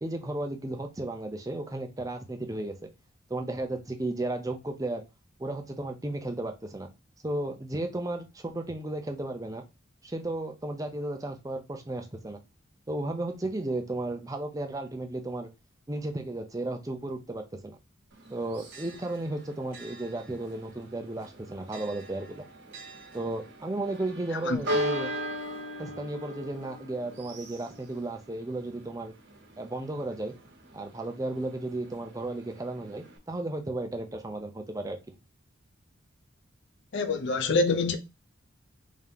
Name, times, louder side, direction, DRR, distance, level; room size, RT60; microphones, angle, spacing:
voice 1, 0.0-2.7 3.3-5.0 5.4-6.9 7.2-9.6 10.0-12.4 12.9-15.5 15.9-17.8 18.3-22.4 23.1-25.1 25.8-29.1 29.6-30.4 30.7-35.0, right 2 dB, 15° right, 0.5 m, -34 dB
Church bell, 18.1-33.2, equal, 55° right, 1.1 m, -39 dB
voice 2, 36.9-38.0, left 3 dB, 55° left, 0.5 m, -25 dB
3.6 x 2.8 x 3.5 m
head